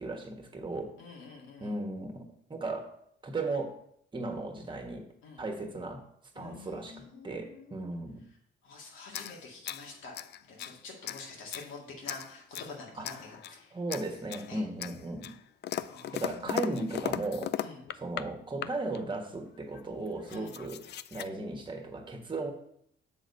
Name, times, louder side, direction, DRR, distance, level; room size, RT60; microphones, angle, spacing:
voice 1, 0.0-0.9 1.6-2.9 3.2-3.7 4.1-5.1 5.4-6.0 6.3-8.2 13.0-13.3 13.7-15.3 16.1-17.5 18.0-22.5, right 2 dB, 25° right, 3 dB, 1.4 m, -36 dB
voice 2, 1.0-1.7 5.2-5.4 6.4-7.9 8.6-10.1 10.4-13.7 14.5-14.6 15.9-16.8 17.6-17.8 20.3-20.6, left 3 dB, 85° left, -1 dB, 2.2 m, -47 dB
sound 1, 9.1-10.8 11.0-11.7 12.1-12.7 13.0-13.6 13.9-14.5 14.8-18.3 18.6-19.0 19.7-19.8 20.1-21.3, left 11 dB, 60° left, 0.4 m, -38 dB
7.3 x 4.0 x 5.3 m, 0.70 s
cardioid pair, 90°, 20 cm